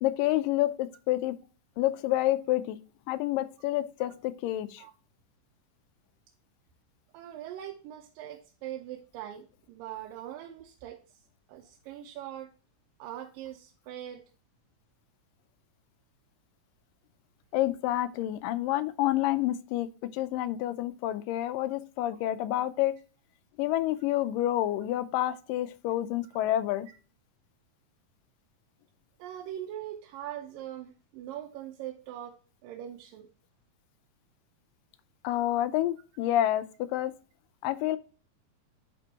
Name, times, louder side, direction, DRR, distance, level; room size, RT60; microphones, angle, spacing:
voice 1, 0.0-1.4 1.8-2.8 3.1-4.8 17.5-22.9 23.6-26.9 35.2-37.1 37.6-38.0, left 14 dB, 90° left, 2.3 m, -28 dB
voice 2, 7.1-11.2 11.5-12.5 13.0-14.2 29.2-33.3, right 11 dB, 90° right, 2.4 m, -42 dB
10.5 x 4.4 x 2.9 m
omnidirectional pair, 3.8 m